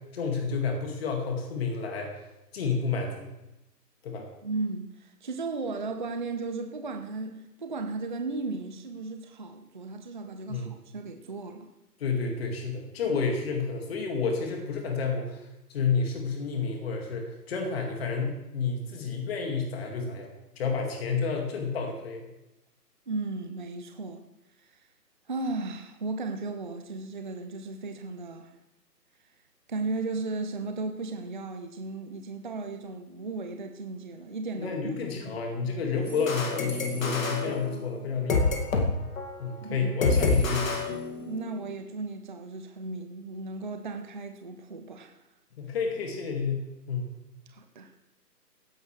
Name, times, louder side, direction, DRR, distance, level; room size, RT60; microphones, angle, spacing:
voice 1, 0.1-2.1 2.5-3.3 4.0-4.2 10.5-10.7 12.0-15.4 15.7-20.3 20.6-22.3 34.6-38.6 39.4-40.8 45.6-47.1, left 5 dB, 35° left, 2 dB, 2.2 m, -30 dB
voice 2, 4.4-11.7 23.1-24.2 24.6-24.8 25.3-28.5 29.7-35.4 39.6-39.9 41.1-45.2 47.5-47.9, right 3 dB, 30° right, 6 dB, 0.6 m, -35 dB
sound 1, 36.1-38.9 39.2-39.4 40.0-41.5, left 3 dB, 55° left, 2.3 m, -28 dB
15.5 x 11.0 x 3.3 m, 0.94 s
figure-of-eight pair, 145°, 49 cm